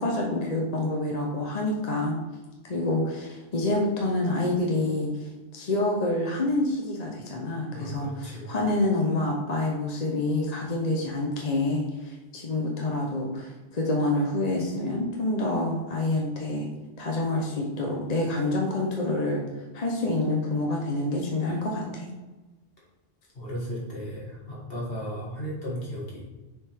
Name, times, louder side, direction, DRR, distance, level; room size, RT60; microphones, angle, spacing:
voice 1, 0.0-2.2 2.6-16.7 17.0-19.4 19.7-22.1, left 2 dB, 40° left, 0 dB, 0.8 m, -27 dB
voice 2, 7.7-8.5 23.3-26.2, equal, 55° left, -5 dB, 2.0 m, -35 dB
6.5 x 4.7 x 3.4 m, 1.1 s
omnidirectional pair, 1.1 m